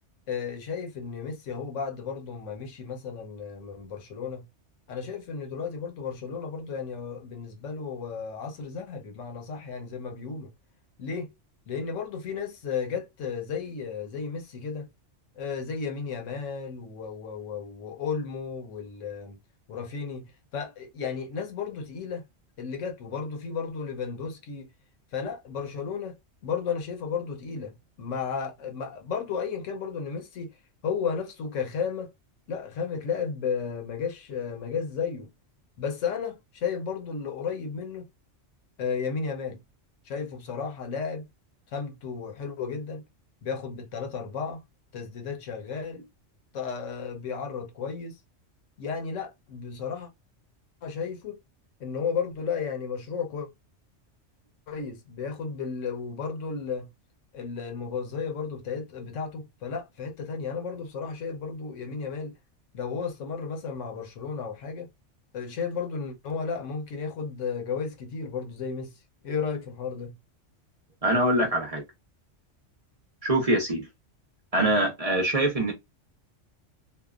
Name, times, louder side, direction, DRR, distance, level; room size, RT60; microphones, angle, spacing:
voice 1, 0.3-4.4 4.9-10.5 11.0-11.3 11.7-14.9 15.4-19.4 19.7-22.2 22.6-24.7 25.1-26.2 26.4-30.6 30.8-32.1 32.5-35.3 35.8-38.1 38.8-39.6 40.0-41.2 41.7-43.0 43.4-44.6 44.9-46.1 46.5-48.2 48.8-50.1 50.8-51.4 51.8-53.5 54.7-56.9 57.3-62.3 62.7-64.9 65.3-68.9 69.2-70.2, left 6 dB, 85° left, 1.1 m, -33 dB
voice 2, 71.0-71.8 73.2-73.8 74.5-75.7, right 1 dB, 35° right, 0.7 m, -24 dB
2.8 x 2.2 x 2.3 m
omnidirectional pair, 1.3 m